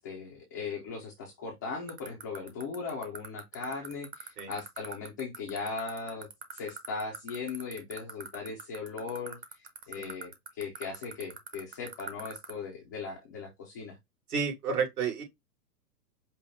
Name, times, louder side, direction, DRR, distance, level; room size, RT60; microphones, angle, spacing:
voice 1, 0.0-9.4 9.9-14.0, left 4 dB, 15° left, 0.3 m, -38 dB
sound 1, 1.9-12.5, right 6 dB, 20° right, 0.7 m, -40 dB
voice 2, 14.3-15.2, right 6 dB, 70° right, 2.5 m, -31 dB
5.4 x 2.2 x 3.2 m
hypercardioid pair, 120°, 47 cm